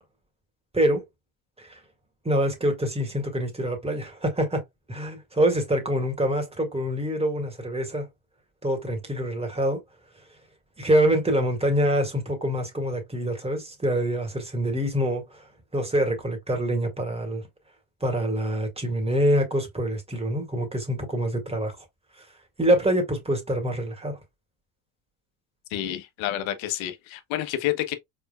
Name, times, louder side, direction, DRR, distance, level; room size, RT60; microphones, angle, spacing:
voice 1, 2.2-4.6 4.9-8.1 8.6-9.8 10.8-15.5 15.7-17.4 18.0-21.7 22.6-24.2, right 1 dB, 10° right, 2.0 m, -25 dB
voice 2, 25.7-27.9, left 13 dB, 70° left, 1.1 m, -29 dB
4.4 x 3.8 x 2.4 m
supercardioid pair, 75°, 49 cm